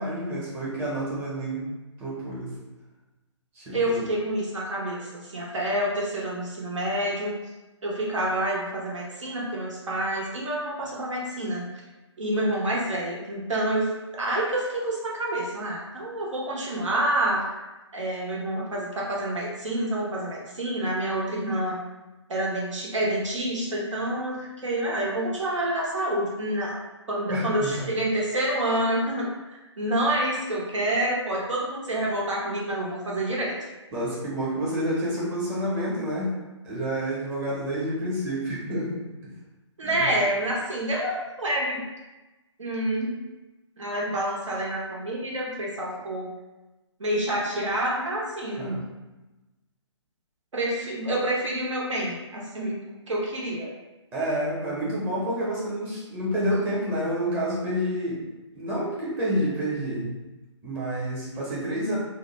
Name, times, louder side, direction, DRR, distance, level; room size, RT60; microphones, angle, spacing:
voice 1, 0.0-1.7 2.0-2.5 3.5-4.0 27.3-27.9 33.9-36.4 36.6-39.0 39.8-40.2 48.6-48.8 54.1-60.2 60.6-62.0, equal, 15° right, -7 dB, 0.7 m, -29 dB
voice 2, 3.7-7.4 7.8-11.7 12.2-17.6 17.9-21.8 22.3-26.8 27.1-29.3 29.8-33.5 39.8-41.8 42.6-43.2 43.8-46.3 47.0-48.8 50.5-53.7, right 1 dB, 80° right, -4 dB, 0.7 m, -28 dB
2.4 x 2.1 x 2.9 m, 1.1 s
figure-of-eight pair, 145°, 16 cm